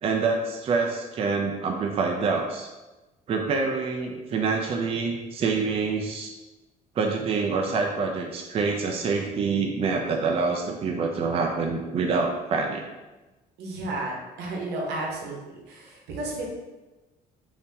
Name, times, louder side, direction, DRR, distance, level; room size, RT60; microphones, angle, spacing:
voice 1, 0.0-2.7 3.3-6.3 7.0-12.9, right 4 dB, 35° right, 2 dB, 0.4 m, -26 dB
voice 2, 13.6-15.4 15.7-16.5, right 2 dB, 85° right, -1 dB, 0.9 m, -32 dB
3.5 x 2.7 x 2.7 m, 1.1 s
cardioid pair, 110°, 17 cm